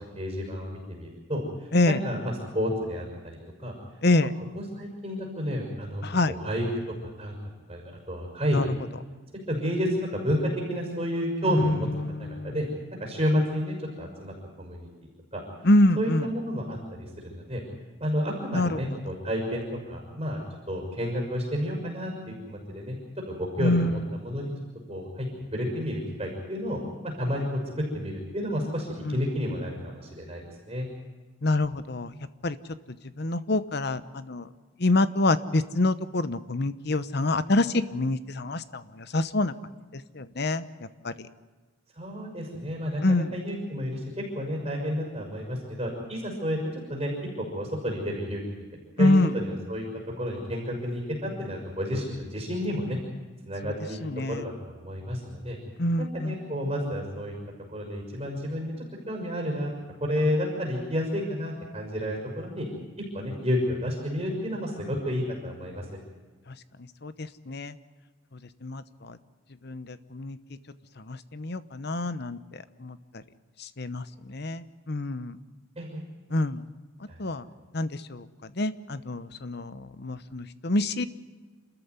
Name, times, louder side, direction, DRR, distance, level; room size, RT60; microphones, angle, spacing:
voice 1, 0.1-3.7 4.2-4.3 4.5-6.6 7.2-7.4 7.7-8.7 9.5-11.9 12.2-12.7 13.0-14.9 15.3-15.4 16.0-17.6 18.0-19.6 19.9-23.0 23.3-24.5 24.9-30.9 42.0-46.6 46.9-48.4 49.0-49.8 50.2-53.0 53.5-54.0 54.3-55.6 56.0-57.3 57.7-58.7 59.1-59.7 60.0-62.7 63.0-66.0 75.8-76.0 77.1-77.2, equal, 30° right, -1 dB, 5.7 m, -31 dB
voice 2, 6.0-6.3 8.5-8.7 11.5-12.5 15.6-16.3 18.5-18.8 23.6-24.1 29.0-29.2 31.4-32.1 32.4-32.6 33.2-34.5 34.8-39.5 39.9-41.1 43.0-43.3 49.0-49.3 53.6-53.7 54.0-54.5 55.8-56.3 67.0-67.7 68.6-69.2 69.6-70.4 71.0-72.4 72.8-73.0 73.6-75.4 76.3-76.6 77.2-77.4 77.7-81.1, left 2 dB, 55° left, 14 dB, 1.0 m, -26 dB
28.0 x 14.0 x 9.5 m, 1.3 s
head